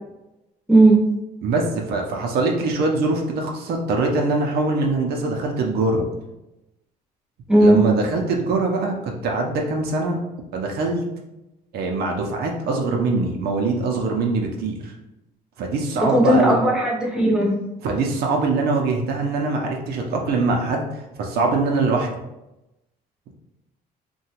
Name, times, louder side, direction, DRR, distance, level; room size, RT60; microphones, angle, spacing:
voice 1, 0.7-1.0 7.5-7.8 16.0-17.6, right 1 dB, 5° right, -3 dB, 0.7 m, -16 dB
voice 2, 1.4-6.0 7.6-10.2 10.5-11.1 11.7-14.9 15.6-16.6 17.8-22.2, right 3 dB, 70° right, 1 dB, 0.6 m, -23 dB
2.9 x 2.2 x 2.8 m, 0.94 s
cardioid pair, 110°, 17 cm